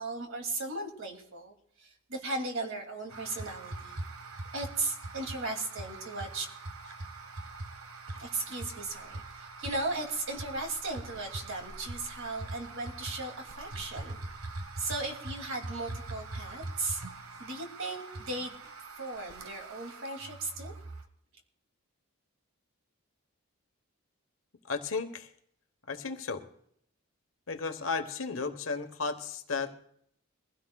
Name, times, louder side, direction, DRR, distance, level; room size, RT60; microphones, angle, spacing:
voice 1, 0.0-4.0 4.5-6.5 8.1-14.2 14.8-17.0 17.4-18.6 19.0-20.7, right 2 dB, 60° right, 3 dB, 2.5 m, -36 dB
sound 1, 3.1-21.1, right 2 dB, 85° right, 1.3 m, -43 dB
voice 2, 24.7-25.3 25.9-26.5 27.5-29.8, left 4 dB, 65° left, 7 dB, 1.1 m, -34 dB
22.5 x 16.0 x 2.3 m, 0.66 s
head